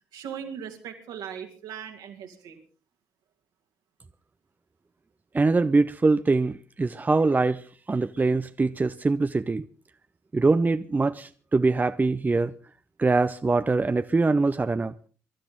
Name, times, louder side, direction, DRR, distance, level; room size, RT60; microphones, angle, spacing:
voice 1, 0.1-2.6, right 8 dB, 65° right, 2.5 m, -39 dB
voice 2, 5.3-7.6 7.9-9.6 10.3-12.5 13.0-14.9, right 3 dB, 25° right, 0.7 m, -23 dB
23.5 x 13.0 x 3.8 m
figure-of-eight pair, 40°, 8 cm